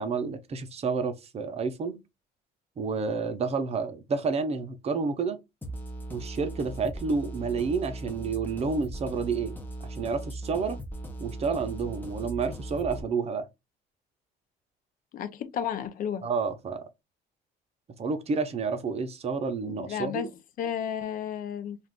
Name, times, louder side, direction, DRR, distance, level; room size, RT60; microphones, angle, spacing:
voice 1, 0.0-2.0 2.8-5.4 6.1-9.5 9.8-10.8 11.2-13.5 16.2-16.8 18.0-20.3, right 5 dB, 40° right, 0.6 m, -30 dB
sound 1, 5.6-13.0, right 1 dB, 10° left, 0.6 m, -39 dB
voice 2, 15.1-16.2 19.6-20.3 20.6-21.8, left 9 dB, 55° left, 0.5 m, -32 dB
2.4 x 2.4 x 3.5 m
cardioid pair, 110°, 17 cm